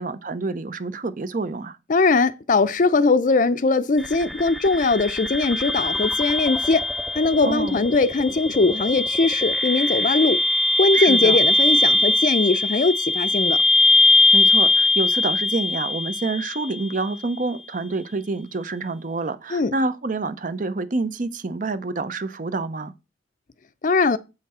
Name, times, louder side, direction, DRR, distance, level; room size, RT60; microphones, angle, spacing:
voice 1, 0.0-1.8 7.4-7.8 10.9-11.4 14.3-22.9, right 3 dB, 45° right, 0.6 m, -27 dB
voice 2, 1.9-6.8 7.1-10.4 10.8-13.6 19.5-19.7 23.8-24.2, left 3 dB, 45° left, 0.5 m, -20 dB
sound 1, 4.0-17.0, left 2 dB, ahead, 0.6 m, -21 dB
7.6 x 5.9 x 4.2 m
head